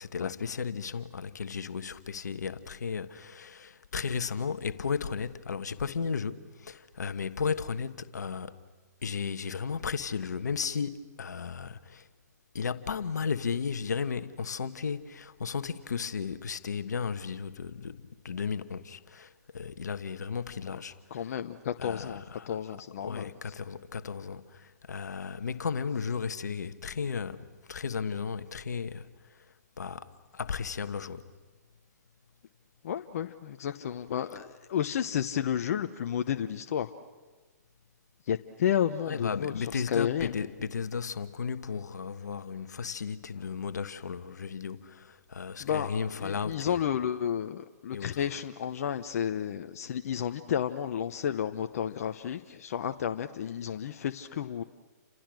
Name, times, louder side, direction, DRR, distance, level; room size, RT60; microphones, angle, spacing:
voice 1, 0.0-8.5 9.0-12.1 12.5-21.4 21.8-22.5 23.0-29.1 29.8-31.2 39.1-46.8 47.9-48.2, left 6 dB, 80° left, 1.3 m, -34 dB
voice 2, 21.1-23.3 32.8-36.9 38.3-40.3 45.6-45.9 46.2-54.6, left 9 dB, 60° left, 1.0 m, -31 dB
29.5 x 27.0 x 6.4 m
hypercardioid pair, 135°, 9 cm